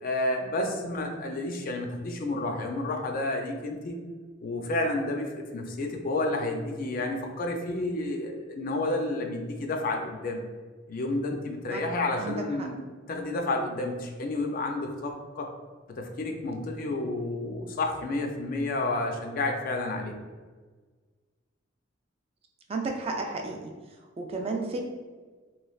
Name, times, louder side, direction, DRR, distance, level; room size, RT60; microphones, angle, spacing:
voice 1, 0.0-4.0 4.4-10.4 10.9-12.8 13.1-15.5 15.9-20.1, left 2 dB, 45° left, 3 dB, 0.4 m, -30 dB
voice 2, 12.2-12.7 22.7-23.7 24.2-24.8, right 3 dB, 30° right, 2 dB, 0.3 m, -32 dB
3.3 x 3.1 x 2.3 m, 1.4 s
head